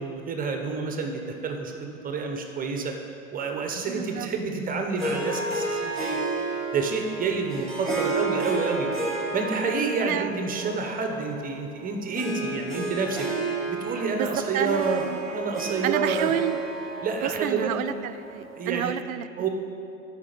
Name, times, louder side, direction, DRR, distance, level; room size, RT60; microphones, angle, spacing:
voice 1, 0.0-2.9 3.3-6.2 6.7-8.9 9.3-13.3 13.7-15.0 15.3-16.3 17.0-17.7 18.5-18.9 19.4-19.5, right 4 dB, 20° right, 3 dB, 0.9 m, -29 dB
voice 2, 3.9-4.3 10.0-10.3 14.2-15.2 15.8-16.6 17.2-19.3, right 11 dB, 75° right, 13 dB, 0.6 m, -29 dB
Harp, 5.0-18.6, right 3 dB, ahead, 2.3 m, -32 dB
12.0 x 5.3 x 5.2 m, 2.6 s
hypercardioid pair, 100°, 42 cm